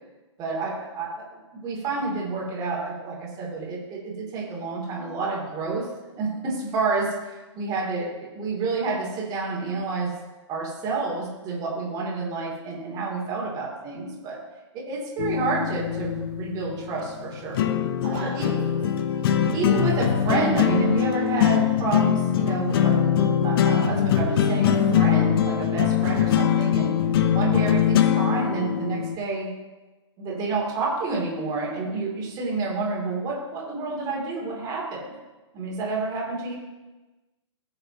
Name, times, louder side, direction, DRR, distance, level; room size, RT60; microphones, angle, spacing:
voice 1, 0.4-5.9 6.2-10.1 10.5-14.4 14.7-17.6 18.2-18.5 19.5-27.0 27.3-29.5 30.2-35.1 35.5-36.5, right 3 dB, 25° right, -3 dB, 2.9 m, -29 dB
sound 1, 15.2-29.2, left 9 dB, 50° left, 0.8 m, -22 dB
voice 2, 18.0-18.9, right 3 dB, 45° right, -3 dB, 1.5 m, -37 dB
17.5 x 6.8 x 3.0 m, 1.2 s
hypercardioid pair, 130°, 16 cm